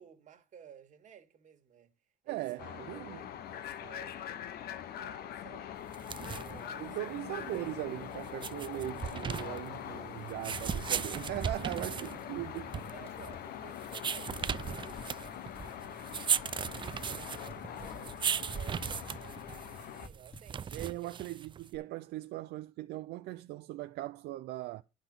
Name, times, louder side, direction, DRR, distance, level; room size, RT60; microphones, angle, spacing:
voice 1, 0.0-1.9 2.3-4.4 4.8-5.7 6.2-7.3 11.8-12.2 12.9-16.3 16.6-21.1, right 8 dB, 45° right, 1.9 m, -56 dB
voice 2, 2.3-3.2 6.8-12.7 20.7-24.8, right 16 dB, 75° right, 0.5 m, -39 dB
sound 1, 2.6-20.1, left 10 dB, 65° left, 0.9 m, -43 dB
sound 2, 5.9-21.8, right 7 dB, 30° right, 0.4 m, -37 dB
sound 3, 13.0-20.9, left 2 dB, 35° left, 2.6 m, -53 dB
10.0 x 5.3 x 6.0 m
cardioid pair, 110°, 17 cm